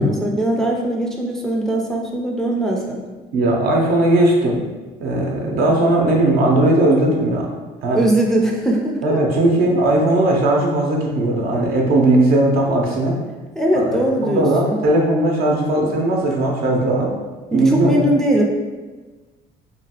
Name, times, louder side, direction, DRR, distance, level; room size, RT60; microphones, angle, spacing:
voice 1, 0.0-3.0 7.9-9.2 13.6-14.8 17.5-18.4, right 1 dB, 5° left, -1 dB, 0.3 m, -20 dB
voice 2, 3.3-4.6 5.0-7.5 7.8-8.1 9.0-13.2 13.7-17.1 17.5-18.0, right 1 dB, 65° right, -1 dB, 0.6 m, -17 dB
2.9 x 2.3 x 2.8 m, 1.3 s
cardioid pair, 110°, 17 cm